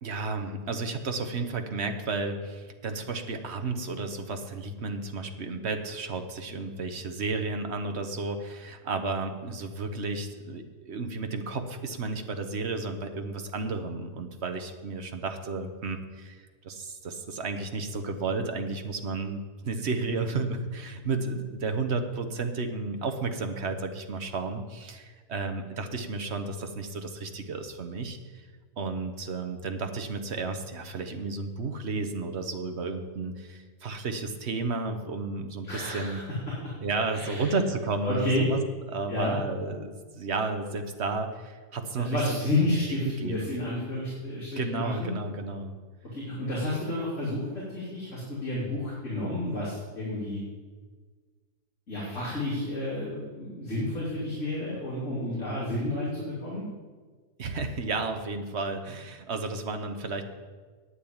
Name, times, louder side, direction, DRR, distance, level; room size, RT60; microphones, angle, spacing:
voice 1, 0.0-28.5 28.8-36.2 36.8-38.6 38.9-42.7 43.0-43.6 44.6-45.7 57.4-60.2, right 3 dB, 45° right, 6 dB, 1.2 m, -32 dB
voice 2, 35.6-36.2 36.6-36.7 37.1-37.5 38.0-38.5 39.1-39.4 42.0-45.1 46.1-50.4 51.9-56.6, left 1 dB, 45° left, -7 dB, 3.3 m, -31 dB
9.2 x 8.9 x 8.7 m, 1.5 s
omnidirectional pair, 1.8 m